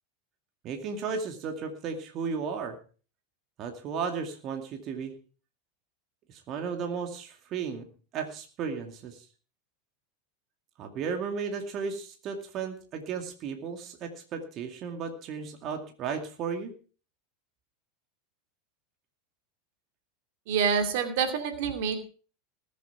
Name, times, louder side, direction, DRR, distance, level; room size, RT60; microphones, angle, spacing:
voice 1, 0.6-2.8 3.6-5.1 6.3-7.9 8.1-9.2 10.8-16.7, right 6 dB, 45° right, 4 dB, 2.3 m, -34 dB
voice 2, 20.5-22.0, right 6 dB, 65° right, 7 dB, 2.5 m, -27 dB
20.0 x 7.5 x 4.7 m, 0.39 s
hypercardioid pair, 95°, 0 cm